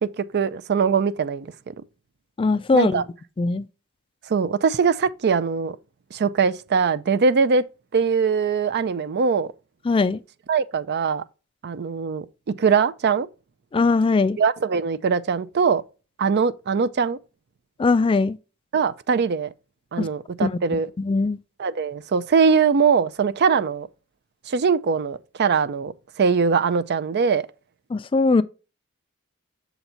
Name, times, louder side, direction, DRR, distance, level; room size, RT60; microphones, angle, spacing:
voice 1, 0.0-1.7 2.7-3.0 4.3-5.8 6.1-7.6 7.9-9.5 10.5-11.2 11.6-12.2 12.6-13.3 14.4-15.8 16.2-17.2 18.7-19.5 19.9-20.9 21.6-23.9 24.5-27.5, right 5 dB, 50° right, 0.4 m, -22 dB
voice 2, 2.4-3.0 3.4-3.7 9.9-10.2 13.7-14.4 17.8-18.4 20.0-20.1 20.4-20.6 21.0-21.4 27.9-28.4, left 3 dB, 25° left, 0.3 m, -20 dB
7.0 x 4.0 x 4.4 m
head